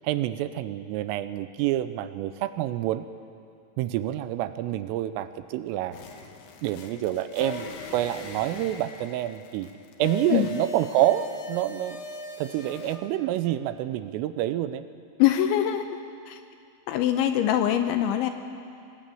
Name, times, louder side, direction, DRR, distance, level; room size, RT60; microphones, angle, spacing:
voice 1, 0.0-3.0 3.8-6.0 6.6-9.7 10.0-12.0 12.4-14.9, right 13 dB, 80° right, 12 dB, 3.2 m, -27 dB
sound 1, 5.9-13.0, left 4 dB, 60° left, 2.5 m, -40 dB
voice 2, 15.2-16.0 16.3-16.4 16.9-18.3, left 11 dB, 80° left, 7 dB, 2.9 m, -23 dB
22.5 x 19.5 x 9.2 m, 2.4 s
omnidirectional pair, 6.0 m